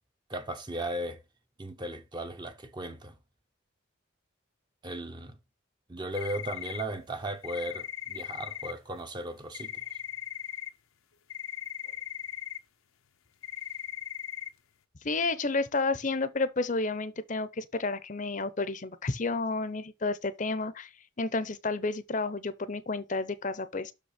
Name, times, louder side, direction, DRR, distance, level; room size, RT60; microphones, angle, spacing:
voice 1, 0.3-1.2 1.6-3.1 4.8-5.4 5.9-9.8, right 1 dB, 20° right, 0.7 m, -36 dB
sound 1, 6.1-6.8 7.4-8.7 9.5-10.7 11.3-12.6 13.4-14.5, left 11 dB, 90° left, 0.7 m, -38 dB
voice 2, 15.0-20.9 21.2-23.9, left 3 dB, 40° left, 0.6 m, -31 dB
6.3 x 5.3 x 4.9 m
head